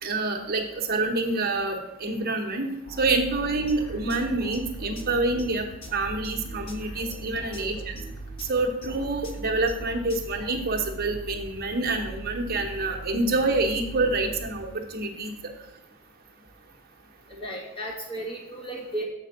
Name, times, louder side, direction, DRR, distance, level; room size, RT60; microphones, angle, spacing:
voice 1, 0.0-2.7 3.0-7.9 8.5-15.3, right 2 dB, 45° right, 2 dB, 1.1 m, -27 dB
sound 1, 2.9-15.1, right 2 dB, 85° left, 1.4 m, -40 dB
sound 2, 3.7-10.3, left 1 dB, 65° left, 1.1 m, -45 dB
voice 2, 17.3-19.0, right 1 dB, 25° left, -2 dB, 1.8 m, -35 dB
7.2 x 4.4 x 6.5 m, 0.93 s
head